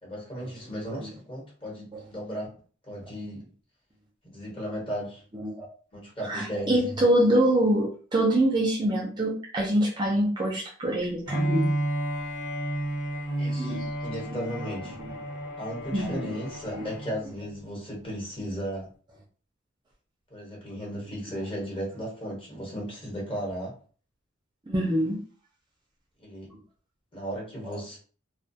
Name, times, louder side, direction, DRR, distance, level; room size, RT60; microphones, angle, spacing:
voice 1, 0.0-2.5 2.9-3.5 4.2-5.2 5.9-6.7 13.4-15.0 15.6-18.9 20.3-23.7 26.2-26.5 27.1-28.0, equal, 25° left, -4 dB, 1.1 m, -35 dB
voice 2, 6.3-11.7 13.6-13.9 14.4-14.5 15.9-16.3 16.7-16.8 24.7-25.2, right 1 dB, 20° right, -2 dB, 0.4 m, -25 dB
Bowed string instrument, 11.2-17.3, right 1 dB, 80° left, 1.4 m, -31 dB
2.2 x 2.2 x 2.7 m, 0.40 s
head